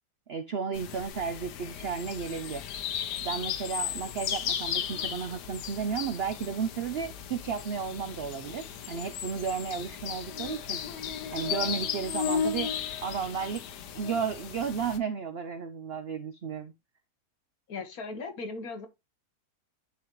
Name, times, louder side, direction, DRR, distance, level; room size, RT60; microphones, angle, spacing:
voice 1, 0.3-2.6 3.2-10.8 11.3-12.7 13.0-13.6 13.9-16.7, right 6 dB, 65° right, 0.6 m, -33 dB
sound 1, 0.7-15.0, left 8 dB, 85° left, 1.4 m, -35 dB
voice 2, 17.7-18.9, left 3 dB, 65° left, 1.7 m, -37 dB
10.5 x 4.2 x 3.1 m
omnidirectional pair, 1.7 m